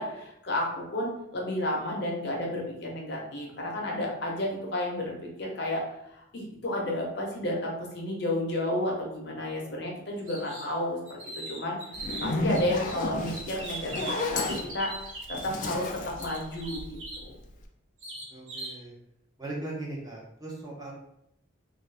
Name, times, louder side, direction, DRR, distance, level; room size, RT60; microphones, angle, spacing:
voice 1, 0.0-5.8 6.1-11.2 11.5-11.8 12.2-14.9 15.3-17.4, left 1 dB, 55° left, -1 dB, 0.7 m, -32 dB
sound 1, 10.3-10.7 11.1-12.9 13.3-15.4 16.2-17.3 18.0-18.8, right 2 dB, 75° right, 1.1 m, -40 dB
Zipper (clothing), 11.9-17.2, left 2 dB, 40° left, 0.3 m, -32 dB
voice 2, 18.3-18.9 19.4-20.9, right 2 dB, 20° right, -3 dB, 0.6 m, -38 dB
2.6 x 2.4 x 3.3 m, 0.79 s
head